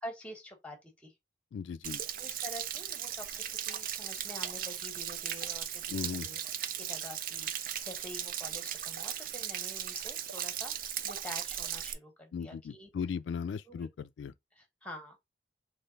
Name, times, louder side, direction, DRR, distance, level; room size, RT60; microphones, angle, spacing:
voice 1, 0.0-1.1 2.2-6.4 6.8-7.5 7.8-12.9 13.7-13.9 14.6-15.2, left 1 dB, 5° left, 1.3 m, -47 dB
voice 2, 1.5-2.0 5.9-6.3 12.3-14.3, left 6 dB, 90° left, 0.3 m, -37 dB
Stream / Splash splatter / Trickle dribble, 1.8-11.9, right 10 dB, 50° right, 0.5 m, -37 dB
3.7 x 3.1 x 4.0 m
head